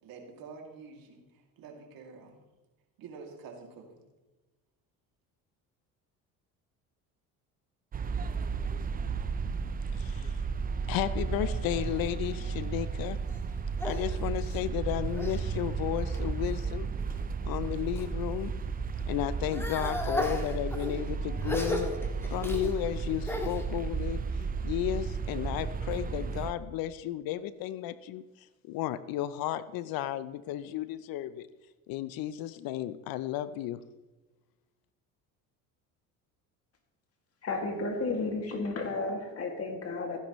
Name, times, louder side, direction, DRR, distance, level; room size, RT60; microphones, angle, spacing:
voice 1, 0.0-2.4 3.0-4.1, right 4 dB, 65° right, 2 dB, 2.6 m, -48 dB
sound 1, 7.9-26.5, right 5 dB, 25° right, 0.5 m, -33 dB
voice 2, 9.9-10.4 10.9-13.2 13.8-16.9 17.5-18.5 19.1-21.9 22.3-24.2 24.6-28.2 28.6-31.5 31.9-33.8, left 12 dB, 65° left, 15 dB, 0.6 m, -33 dB
sound 2, 12.8-15.4 15.9-16.5 17.1-18.1 18.5-23.6, left 1 dB, 5° left, 1.7 m, -37 dB
voice 3, 37.4-40.2, left 3 dB, 40° left, 3 dB, 2.3 m, -32 dB
15.5 x 10.0 x 3.1 m, 1.1 s
supercardioid pair, 90°, 38 cm